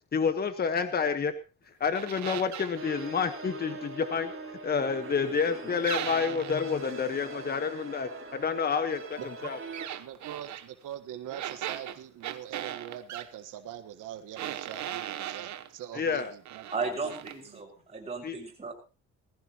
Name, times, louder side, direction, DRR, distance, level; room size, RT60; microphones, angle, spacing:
voice 1, 0.1-1.3 1.8-4.3 4.6-9.6 15.9-16.3 18.2-18.4, left 6 dB, 30° left, 10 dB, 1.3 m, -29 dB
sound 1, 1.9-2.8 5.8-6.6 9.7-10.7 11.3-13.3 14.3-15.7 16.2-16.8 17.1-17.4, right 12 dB, 65° right, 1.0 m, -37 dB
sound 2, 2.7-9.9, right 3 dB, 45° right, 3.4 m, -42 dB
voice 2, 9.2-9.5 10.0-17.1 17.5-17.6, right 11 dB, 90° right, 7 dB, 1.5 m, -43 dB
voice 3, 16.7-18.7, right 4 dB, 20° right, 0 dB, 5.6 m, -35 dB
20.0 x 15.0 x 3.0 m, 0.32 s
cardioid pair, 145°, 30 cm